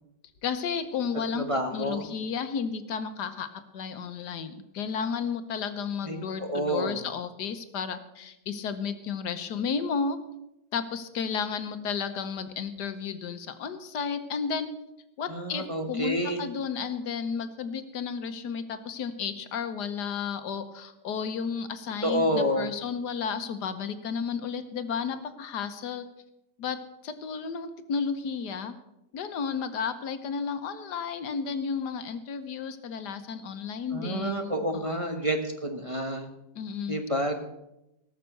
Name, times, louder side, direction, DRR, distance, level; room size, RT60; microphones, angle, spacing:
voice 1, 0.4-10.2 10.7-14.7 15.2-26.0 26.6-26.8 27.0-28.7 29.1-35.1 36.5-37.0, left 6 dB, 80° left, 9 dB, 1.6 m, -33 dB
voice 2, 1.3-2.1 6.1-7.0 15.3-16.4 22.0-22.7 33.9-35.4 35.6-36.3 36.9-37.3, equal, 20° right, 3 dB, 1.1 m, -29 dB
18.5 x 6.7 x 6.7 m, 0.89 s
omnidirectional pair, 1.8 m